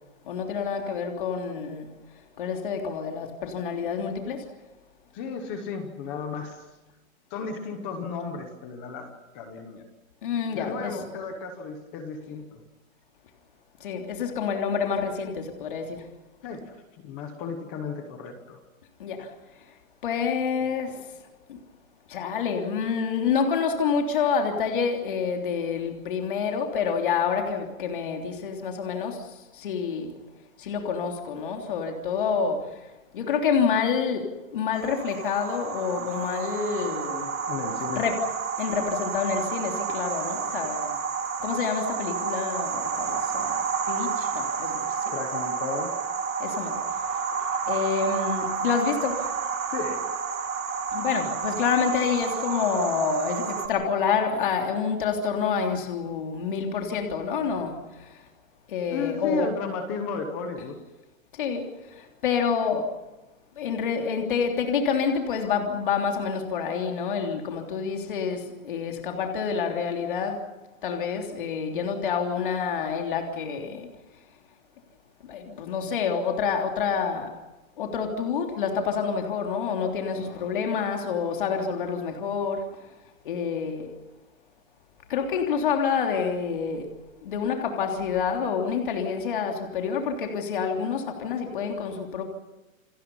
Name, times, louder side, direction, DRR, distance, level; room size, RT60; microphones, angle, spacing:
voice 1, 0.3-1.9 2.4-4.4 10.2-11.0 13.8-16.0 19.0-19.3 20.0-21.0 21.5-21.6 22.1-29.2 29.6-30.1 30.6-32.6 33.1-34.2 34.5-37.3 37.9-38.2 38.6-40.9 41.4-45.1 46.4-46.8 47.7-49.3 50.9-57.7 58.7-59.5 61.4-61.6 62.2-62.9 63.6-70.4 70.8-73.9 75.2-77.3 77.8-82.6 83.2-83.9 85.1-86.8 87.2-92.2, left 6 dB, 40° left, 3.3 m, -28 dB
voice 2, 5.1-6.7 7.3-9.8 10.5-12.6 16.4-18.6 37.5-38.0 45.1-45.9 49.7-50.1 58.9-60.8, left 4 dB, 10° left, 0.9 m, -34 dB
sound 1, 34.7-53.7, right 5 dB, 75° right, 3.8 m, -30 dB
29.0 x 24.0 x 5.5 m
hypercardioid pair, 180°, 41 cm